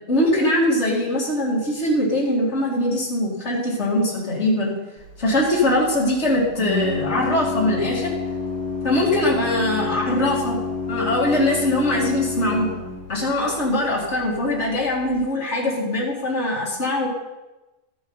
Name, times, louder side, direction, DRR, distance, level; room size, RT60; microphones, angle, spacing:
voice 1, 0.1-4.7 5.2-8.1 8.8-10.6 10.9-12.7 13.1-17.1, left 1 dB, 65° left, -5 dB, 2.7 m, -22 dB
Organ, 5.0-15.1, left 4 dB, 5° left, 5.2 m, -30 dB
13.5 x 10.5 x 4.0 m, 1.1 s
omnidirectional pair, 1.2 m